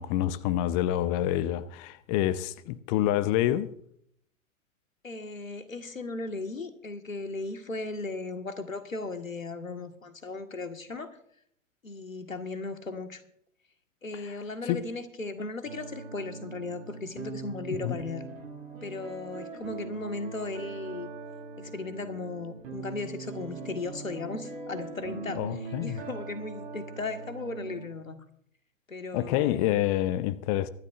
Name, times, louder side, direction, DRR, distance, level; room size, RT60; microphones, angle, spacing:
voice 1, 0.0-3.7 14.2-14.3 14.7-14.8 17.8-18.0 25.4-26.0 29.1-30.7, left 13 dB, 30° left, 0.8 m, -27 dB
voice 2, 5.0-11.2 11.8-13.2 14.0-18.3 18.8-21.1 21.6-25.4 25.8-28.2 28.9-29.8, left 3 dB, 80° left, 1.8 m, -36 dB
sound 1, 15.6-27.9, right 4 dB, 45° right, 7.0 m, -41 dB
24.5 x 12.0 x 2.6 m
figure-of-eight pair, 105°, 39 cm